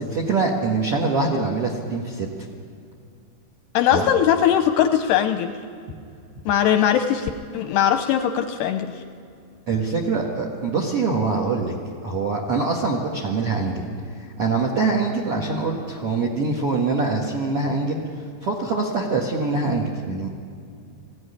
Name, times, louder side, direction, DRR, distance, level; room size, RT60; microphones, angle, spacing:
voice 1, 0.0-2.3 3.9-4.1 9.7-11.7 12.0-13.8 14.4-18.0 18.4-20.3, right 3 dB, 60° right, 0 dB, 1.5 m, -24 dB
voice 2, 3.7-5.5 6.5-8.9, left 9 dB, 80° left, 7 dB, 2.5 m, -20 dB
20.0 x 15.5 x 9.9 m, 2.3 s
omnidirectional pair, 5.4 m